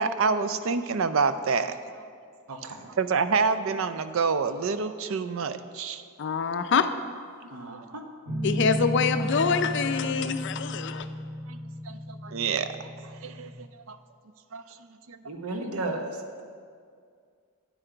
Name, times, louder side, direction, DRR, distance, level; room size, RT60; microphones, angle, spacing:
voice 1, 0.0-2.0 2.9-6.0 7.7-7.8 11.5-11.6 11.9-14.0 14.5-14.6 15.1-15.2, right 5 dB, 60° right, 0.4 m, -28 dB
voice 2, 2.5-2.9 7.5-8.0 15.2-16.2, right 2 dB, 85° right, 0.9 m, -34 dB
voice 3, 6.2-6.9 8.4-11.1, left 5 dB, 55° left, 0.4 m, -25 dB
Guitar, 8.3-13.5, equal, 40° right, 2.4 m, -33 dB
9.5 x 7.6 x 4.5 m
head